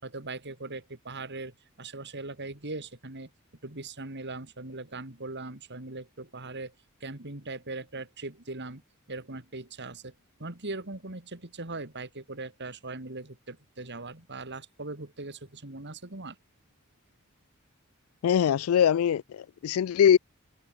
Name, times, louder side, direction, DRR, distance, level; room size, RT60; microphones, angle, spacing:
voice 1, 0.0-3.3 3.6-6.7 7.0-8.8 9.1-10.1 10.4-16.4, right 2 dB, 50° right, 3.5 m, -40 dB
voice 2, 18.2-20.2, left 8 dB, 70° left, 0.3 m, -22 dB
head